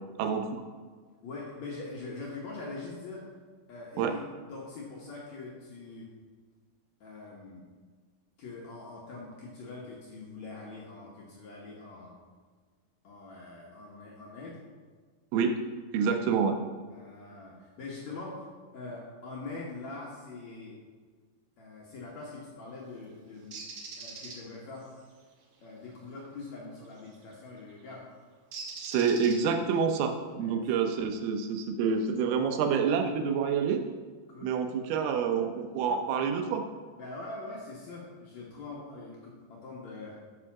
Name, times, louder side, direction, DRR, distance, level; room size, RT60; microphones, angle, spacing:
voice 1, 0.2-0.6 4.0-4.2 15.3-15.6 15.9-16.6 28.8-33.8 34.4-36.6, right 6 dB, 85° right, 6 dB, 2.7 m, -28 dB
voice 2, 1.2-3.2 3.7-4.2 4.5-6.1 7.0-7.6 8.4-12.1 13.0-14.6 16.9-18.5 18.7-20.8 21.6-23.6 24.0-24.9 25.6-28.1 30.3-30.6 34.3-34.5 37.0-40.2, left 3 dB, 65° left, -4 dB, 1.9 m, -43 dB
Bird, 23.5-24.4 27.0-27.2 28.5-29.7, right 4 dB, 65° right, 1.9 m, -41 dB
6.2 x 5.7 x 5.8 m, 1.5 s
omnidirectional pair, 4.4 m